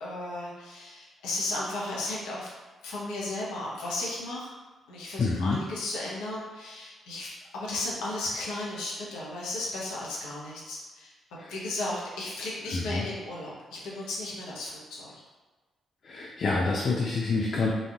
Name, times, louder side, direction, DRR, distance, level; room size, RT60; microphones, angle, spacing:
voice 1, 0.0-2.5 2.8-4.5 4.9-11.1 11.5-15.2, left 2 dB, 75° left, -5 dB, 0.7 m, -35 dB
voice 2, 5.2-5.6 11.4-11.5 12.7-13.1 16.0-17.7, left 3 dB, 55° left, -1 dB, 0.3 m, -27 dB
4.0 x 2.5 x 2.3 m, 1.3 s
hypercardioid pair, 40°, 0 cm